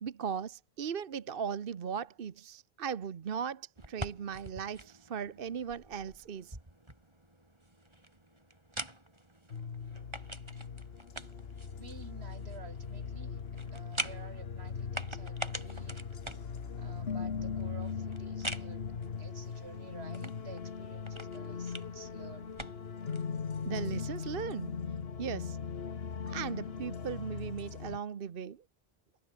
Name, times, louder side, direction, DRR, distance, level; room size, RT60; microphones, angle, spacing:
voice 1, 0.0-6.6 23.6-24.8 25.2-25.6 26.3-28.6, right 7 dB, 60° right, 1.1 m, -38 dB
sound 1, 3.8-23.3, right 1 dB, 25° right, 4.1 m, -46 dB
sound 2, 9.5-28.0, left 6 dB, 70° left, 1.5 m, -39 dB
voice 2, 11.8-16.0 16.3-16.4 16.8-22.6, right 4 dB, 85° right, 2.3 m, -52 dB
omnidirectional pair, 1.1 m